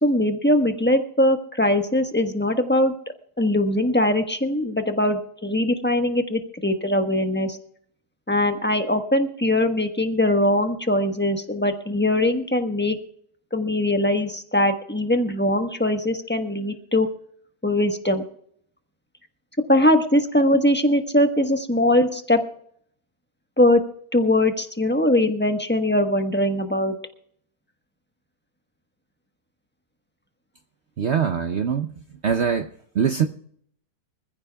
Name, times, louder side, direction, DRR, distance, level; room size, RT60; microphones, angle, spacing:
voice 1, 0.0-2.9 3.4-7.6 8.3-13.0 13.5-17.1 17.6-18.2 19.7-22.4 23.6-23.8 24.1-27.0, left 1 dB, 10° left, 5 dB, 1.0 m, -21 dB
voice 2, 31.0-31.9 32.2-33.3, right 7 dB, 55° right, 7 dB, 0.9 m, -23 dB
25.5 x 15.0 x 2.3 m, 0.64 s
omnidirectional pair, 1.7 m